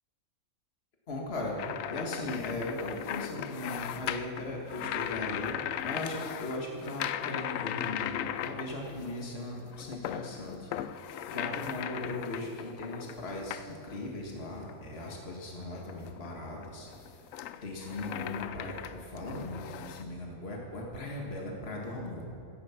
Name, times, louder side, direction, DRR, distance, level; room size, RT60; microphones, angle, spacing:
voice 1, 1.1-1.6 1.9-10.9 11.3-17.2 17.6-22.3, left 2 dB, 45° left, -1 dB, 2.1 m, -38 dB
sound 1, 1.6-9.2 9.6-14.1 14.6-15.2 15.8-20.0, left 10 dB, 75° left, 1.0 m, -38 dB
17.0 x 14.0 x 5.9 m, 2.8 s
omnidirectional pair, 1.4 m